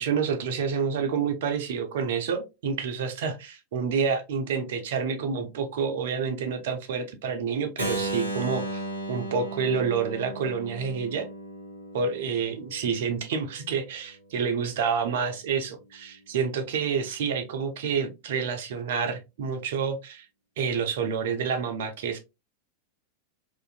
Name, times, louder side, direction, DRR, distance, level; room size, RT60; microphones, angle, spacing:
voice 1, 0.0-8.8 9.1-11.3 11.9-20.3 20.6-22.2, right 6 dB, 55° right, 0.5 m, -28 dB
Keyboard (musical), 7.8-13.6, right 1 dB, 85° left, 0.6 m, -35 dB
2.6 x 2.4 x 2.3 m
figure-of-eight pair, 90°, 0 cm